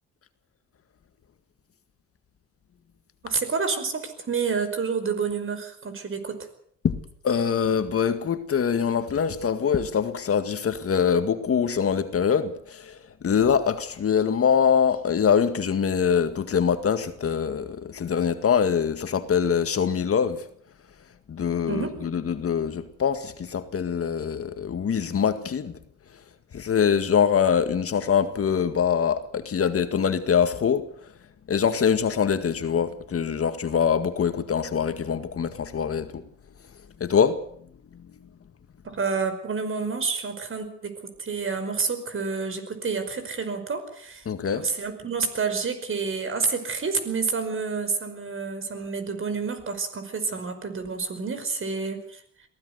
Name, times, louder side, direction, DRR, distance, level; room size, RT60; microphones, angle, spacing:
voice 1, 3.2-6.4 21.7-21.9 38.9-40.9 41.2-44.2 44.5-52.2, right 5 dB, 45° right, 5.2 m, -29 dB
voice 2, 7.2-13.0 13.2-20.4 21.3-25.8 26.5-30.9 31.5-36.2 37.0-37.4 44.3-44.7, left 7 dB, 50° left, 2.0 m, -24 dB
22.5 x 16.0 x 8.1 m
cardioid pair, 90°, 30 cm